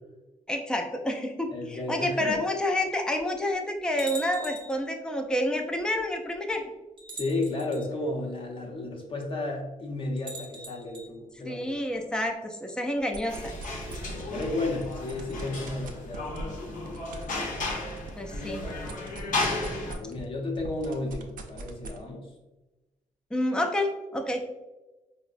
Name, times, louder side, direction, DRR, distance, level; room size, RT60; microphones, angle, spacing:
voice 1, 0.5-6.6 11.5-13.5 18.2-18.6 23.3-24.6, left 1 dB, 5° left, 3 dB, 0.4 m, -29 dB
voice 2, 1.5-2.4 7.1-11.7 14.1-16.7 19.4-19.7 20.0-22.3, left 2 dB, 40° left, -1 dB, 0.8 m, -33 dB
sound 1, 2.3-2.4 3.2-3.3 4.0-4.8 6.0-6.1 7.0-7.8 10.2-11.1, right 1 dB, 35° right, 0.7 m, -41 dB
sound 2, 13.0-14.5 14.8-20.3 20.6-22.0, right 3 dB, 70° right, 0.5 m, -41 dB
sound 3, 13.3-20.0, left 2 dB, 70° left, 0.8 m, -34 dB
4.5 x 2.1 x 2.5 m, 1.1 s
cardioid pair, 105°, 14 cm